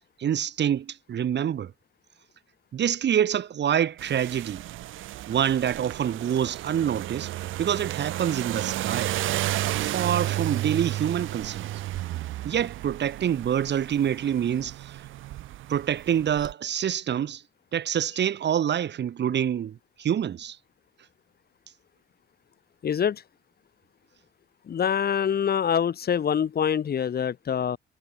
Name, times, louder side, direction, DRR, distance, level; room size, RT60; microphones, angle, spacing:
voice 1, 0.2-1.7 2.7-4.6 5.3-7.3 7.6-9.1 9.8-11.7 12.4-14.9 15.7-17.4 17.7-20.6, right 9 dB, 60° right, 3.9 m, -26 dB
sound 1, 4.0-16.5, right 15 dB, 80° right, 1.0 m, -33 dB
voice 2, 22.8-23.2 24.7-27.8, left 8 dB, 50° left, 2.3 m, -25 dB
cardioid pair, 90°, 20 cm